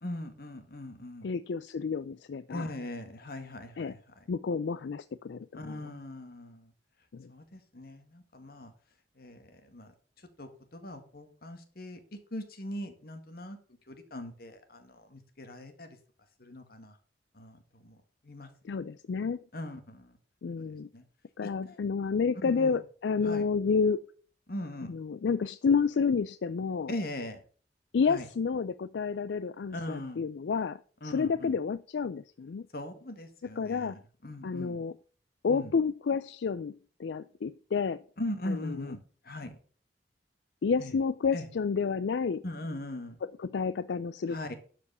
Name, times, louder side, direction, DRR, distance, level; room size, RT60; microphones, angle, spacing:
voice 1, 0.0-1.3 2.5-4.0 5.5-6.7 7.3-8.7 9.2-9.9 10.4-12.0 12.3-13.6 13.9-16.0 16.4-17.0 17.3-18.5 19.5-20.2 20.6-20.7 20.9-21.0 21.4-21.8 22.4-22.8 23.2-23.5 24.5-24.9 26.9-27.4 28.1-28.2 29.7-30.2 31.0-31.5 32.7-34.8 35.5-35.7 38.2-39.0 39.2-39.6 40.8-40.9 41.3-41.5 42.4-43.2 44.3-44.5, left 1 dB, 55° left, 1.9 m, -40 dB
voice 2, 1.2-2.7 3.8-4.0 4.3-5.8 7.1-7.3 18.6-19.4 20.4-20.9 21.4-24.0 24.9-26.9 27.9-32.7 33.6-34.0 34.4-35.0 35.4-38.0 38.5-38.8 40.6-42.4 43.2-44.4, left 5 dB, 80° left, 0.4 m, -30 dB
11.5 x 5.0 x 6.7 m
head